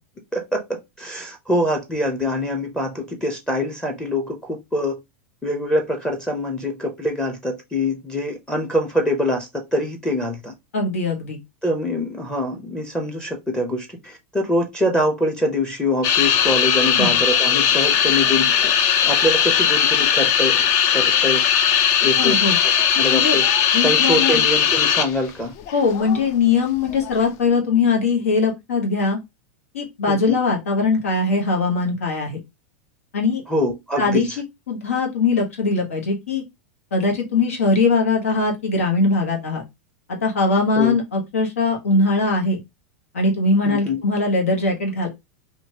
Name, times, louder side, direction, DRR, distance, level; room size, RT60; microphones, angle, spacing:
voice 1, 0.3-5.0 5.4-10.5 11.6-18.7 19.0-21.4 22.0-22.4 22.6-23.4 23.8-25.5 30.1-30.4 33.5-34.2 40.8-41.0 43.6-44.0, left 1 dB, 10° left, 0.7 m, -24 dB
voice 2, 10.7-11.4 17.0-17.2 22.2-22.6 23.1-23.4 23.7-24.4 25.7-29.2 29.7-32.4 33.1-33.4 34.0-34.3 34.7-36.4 36.9-39.6 40.1-42.6 43.1-45.1, left 3 dB, 90° left, 1.2 m, -21 dB
sound 1, 16.0-25.3 25.6-26.2 26.9-27.2, left 8 dB, 45° left, 0.5 m, -18 dB
3.0 x 2.5 x 2.8 m
hypercardioid pair, 120°, 7 cm